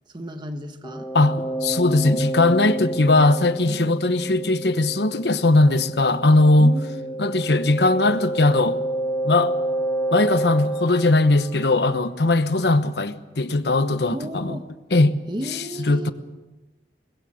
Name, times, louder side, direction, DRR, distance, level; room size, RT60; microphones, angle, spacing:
voice 1, 0.1-1.1 3.6-4.0 6.6-7.1 14.1-14.7 15.3-16.1, equal, 25° right, 1.4 m, -33 dB
sound 1, 0.8-12.4, right 1 dB, 15° left, 1.7 m, -29 dB
voice 2, 1.1-6.8 7.2-8.8 9.2-9.5 10.1-14.6 14.9-15.2 15.5-16.1, left 2 dB, 70° left, 1.1 m, -19 dB
22.0 x 20.5 x 6.5 m
head